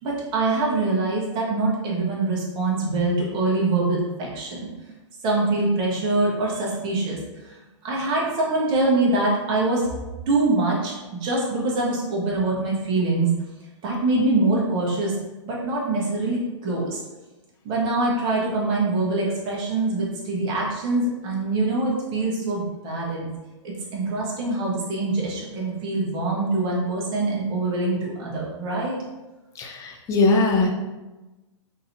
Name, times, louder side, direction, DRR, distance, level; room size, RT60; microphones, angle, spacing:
voice 1, 0.0-4.7 5.2-7.5 7.8-9.9 10.3-10.9 11.2-13.4 13.8-15.1 15.4-17.0 17.6-23.3 23.6-29.0, right 2 dB, 30° right, -3 dB, 1.1 m, -24 dB
voice 2, 29.6-30.7, left 3 dB, 20° left, 1 dB, 0.5 m, -20 dB
3.9 x 2.9 x 2.7 m, 1.1 s
hypercardioid pair, 130°, 16 cm